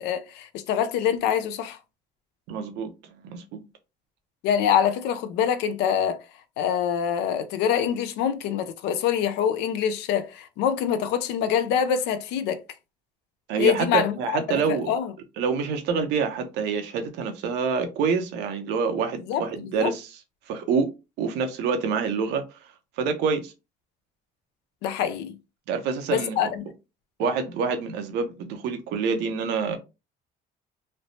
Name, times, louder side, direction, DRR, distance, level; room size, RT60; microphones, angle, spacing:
voice 1, 0.0-1.8 4.4-6.2 6.6-12.6 13.6-15.1 19.3-19.9 24.8-25.3 26.1-26.6, left 8 dB, 85° left, 0.5 m, -25 dB
voice 2, 2.5-3.6 13.5-14.9 15.4-20.1 20.5-20.9 21.2-22.4 23.0-23.5 25.7-26.4 27.2-29.8, right 5 dB, 90° right, 0.7 m, -27 dB
3.2 x 2.0 x 2.6 m
cardioid pair, 110°, 17 cm